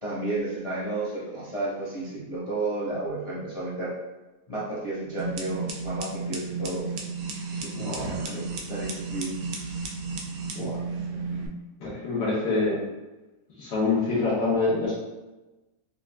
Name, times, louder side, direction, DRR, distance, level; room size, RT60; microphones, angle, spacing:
voice 1, 0.0-3.9 4.5-6.9 7.5-7.7 8.2-9.9, right 2 dB, 30° left, -9 dB, 0.7 m, -32 dB
sound 1, 5.2-11.5, right 4 dB, 70° right, 0.9 m, -33 dB
voice 2, 7.7-8.2 10.5-10.8 11.8-12.8 13.6-14.9, left 3 dB, 85° left, -8 dB, 1.6 m, -26 dB
5.4 x 2.4 x 2.2 m, 1.1 s
omnidirectional pair, 1.7 m